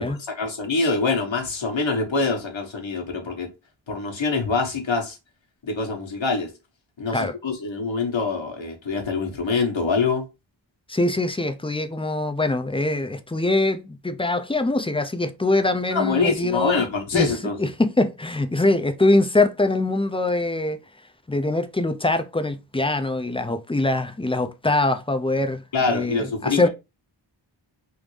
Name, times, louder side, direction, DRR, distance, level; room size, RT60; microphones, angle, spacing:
voice 1, 0.0-3.5 3.9-5.2 5.6-6.5 7.0-10.2 15.9-17.7 25.7-26.7, left 4 dB, 75° left, 1.2 m, -25 dB
voice 2, 10.9-16.8 17.1-17.3 17.6-20.8 21.3-25.6 25.9-26.7, left 2 dB, 15° left, 0.4 m, -23 dB
3.5 x 2.6 x 3.1 m
wide cardioid pair, 75°, 46 cm